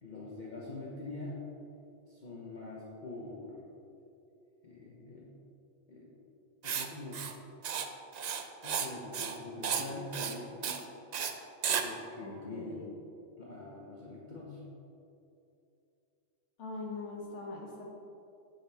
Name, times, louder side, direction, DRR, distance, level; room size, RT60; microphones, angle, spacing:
voice 1, 0.0-1.4 2.1-3.7 4.6-5.3 5.9-6.1 6.6-7.3 8.6-10.9 11.8-12.8 13.4-14.6, left 2 dB, 40° left, -4 dB, 0.9 m, -44 dB
Writing, 6.6-6.9 7.1-7.3 7.6-7.9 8.1-8.9 9.1-9.4 9.6-9.9 10.1-10.3 10.6-10.8 11.1-11.3 11.6-11.8, right 7 dB, 75° right, 0.3 m, -33 dB
voice 2, 12.2-12.9 16.6-17.8, left 3 dB, 70° left, -2 dB, 1.5 m, -42 dB
7.7 x 7.0 x 3.4 m, 2.8 s
omnidirectional pair, 1.3 m